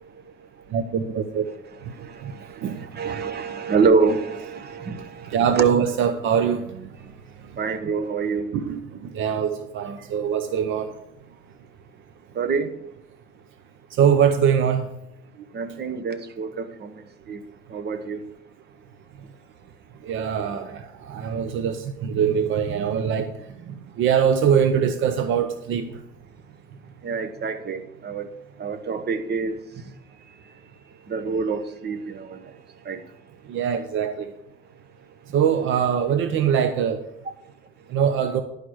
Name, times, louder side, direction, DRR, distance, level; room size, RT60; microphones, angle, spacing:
voice 1, 0.7-1.4 2.2-2.3 2.6-2.8 5.3-6.9 8.5-8.8 9.1-10.9 14.0-14.9 20.0-23.3 24.0-25.9 33.5-34.3 35.3-37.0 37.9-38.4, right 8 dB, 80° right, 9 dB, 0.7 m, -22 dB
voice 2, 2.6-5.6 7.6-8.5 12.4-12.7 15.5-16.9 17.3-17.4 17.7-18.2 27.0-28.3 28.6-29.6 31.1-32.4 32.9-33.0, right 4 dB, 55° right, 10 dB, 1.1 m, -26 dB
11.5 x 5.0 x 6.2 m, 0.82 s
cardioid pair, 90°, 20 cm